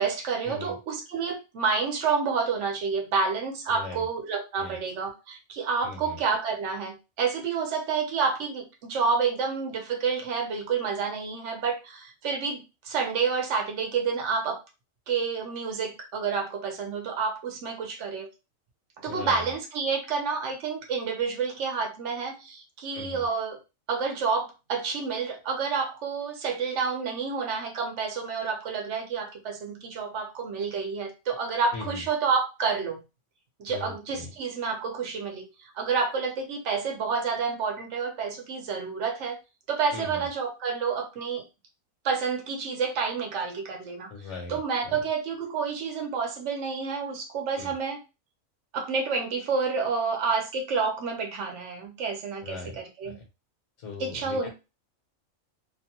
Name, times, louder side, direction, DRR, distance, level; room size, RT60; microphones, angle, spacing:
voice 1, 0.0-14.6 15.1-18.3 19.0-23.6 23.9-33.0 33.6-39.4 39.7-41.4 42.0-44.1 44.5-48.0 48.7-53.2 54.0-54.5, right 5 dB, 65° right, 3 dB, 1.1 m, -29 dB
voice 2, 3.7-4.1 4.6-4.8 5.8-6.2 19.1-19.5 22.9-23.2 31.7-32.0 33.7-34.3 39.9-40.2 44.1-45.0 47.6-47.7 52.4-52.8 53.0-53.2 53.8-54.5, left 4 dB, 65° left, 0 dB, 1.2 m, -39 dB
2.9 x 2.2 x 2.8 m, 0.28 s
omnidirectional pair, 1.4 m